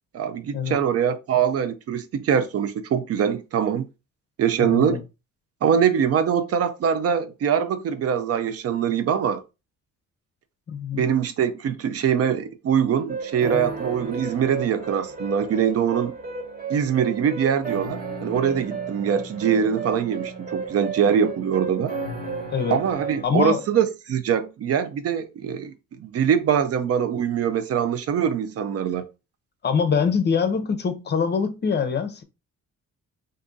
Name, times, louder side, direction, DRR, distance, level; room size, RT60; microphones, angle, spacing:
voice 1, 0.1-3.9 4.4-5.0 5.6-9.4 10.9-16.1 16.7-21.9 22.7-25.7 26.0-29.1, right 8 dB, 55° right, 0.5 m, -23 dB
voice 2, 4.6-5.0 10.7-11.0 22.5-22.8 23.2-23.6 29.6-32.2, left 6 dB, 35° left, 0.6 m, -24 dB
sound 1, 13.1-23.2, right 4 dB, 30° right, 1.2 m, -33 dB
2.6 x 2.6 x 3.7 m
cardioid pair, 90°, 30 cm